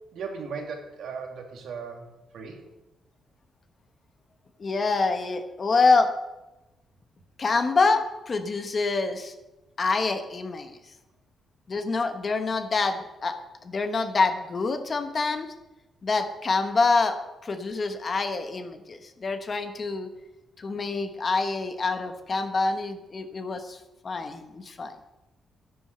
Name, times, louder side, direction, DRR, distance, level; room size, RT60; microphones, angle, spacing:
voice 1, 0.1-2.6, right 5 dB, 70° right, 3 dB, 2.5 m, -37 dB
voice 2, 4.6-6.1 7.4-9.3 9.8-10.7 11.7-13.4 13.6-15.5 16.0-17.2 17.4-20.1 20.6-23.8 24.0-24.9, left 3 dB, 30° left, 8 dB, 1.2 m, -26 dB
11.0 x 11.0 x 6.7 m, 1.0 s
cardioid pair, 150°, 0 cm